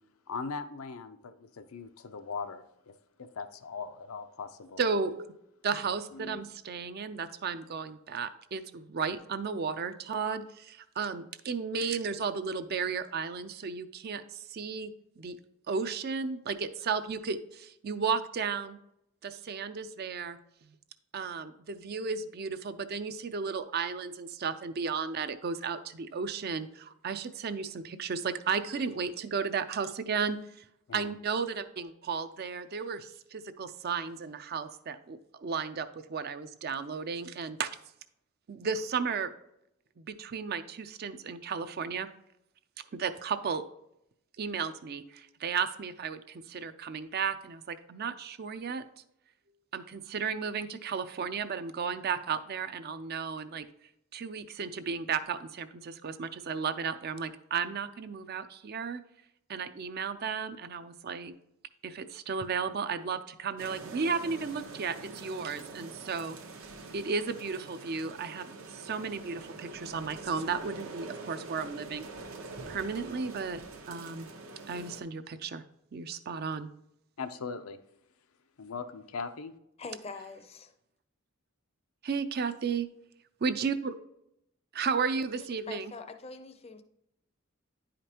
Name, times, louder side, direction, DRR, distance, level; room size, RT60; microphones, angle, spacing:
voice 1, 0.3-4.8 5.8-6.4 30.9-31.1 77.2-77.8 78.6-79.5, left 5 dB, 90° left, 9 dB, 0.6 m, -40 dB
voice 2, 4.8-5.3 5.6-15.4 15.7-18.8 19.2-20.4 21.1-30.4 30.9-37.7 38.5-39.3 40.0-42.1 42.9-43.6 44.4-48.8 49.7-53.6 54.1-59.0 59.5-61.3 61.8-66.4 66.9-72.1 72.7-73.6 73.9-74.3 74.7-75.6 75.9-76.7 82.0-82.9 83.4-84.0 84.7-85.9, right 5 dB, 50° right, 11 dB, 0.4 m, -34 dB
sound 1, 63.6-75.0, right 3 dB, 80° right, 1.0 m, -45 dB
voice 3, 79.8-80.7 85.4-86.8, left 4 dB, 30° left, 9 dB, 0.5 m, -44 dB
9.9 x 5.1 x 2.9 m, 0.81 s
head